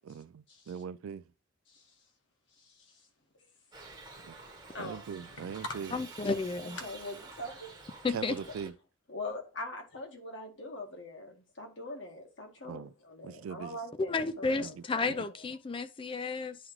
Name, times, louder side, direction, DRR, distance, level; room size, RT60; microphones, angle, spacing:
voice 1, 0.0-1.2 4.3-4.4 4.8-5.9 8.1-8.7 12.6-12.9 13.2-13.8 14.6-14.7 15.0-15.2, right 7 dB, 85° right, 0.3 m, -41 dB
voice 2, 2.6-3.0 4.7-5.1 5.4-5.6 6.6-7.7 8.2-8.3 9.1-15.4, left 2 dB, 65° left, 1.6 m, -43 dB
Shout / Livestock farm animals working animals, 3.7-8.7, right 3 dB, 20° right, 1.0 m, -49 dB
voice 3, 5.9-6.8 8.0-8.3 14.1-16.6, left 3 dB, 25° left, 0.4 m, -32 dB
10.0 x 3.7 x 3.1 m
head